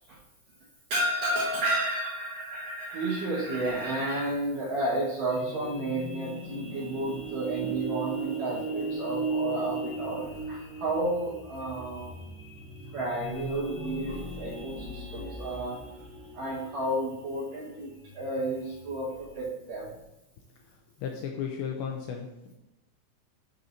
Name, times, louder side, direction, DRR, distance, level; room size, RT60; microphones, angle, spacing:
voice 1, 0.9-12.2 12.9-15.8 16.3-20.0, right 1 dB, 65° right, -7 dB, 2.2 m, -31 dB
sound 1, 5.3-19.4, right 3 dB, 10° right, 1.0 m, -37 dB
voice 2, 21.0-22.5, left 7 dB, 85° left, 1 dB, 2.6 m, -34 dB
9.3 x 5.7 x 2.6 m, 0.93 s
omnidirectional pair, 5.6 m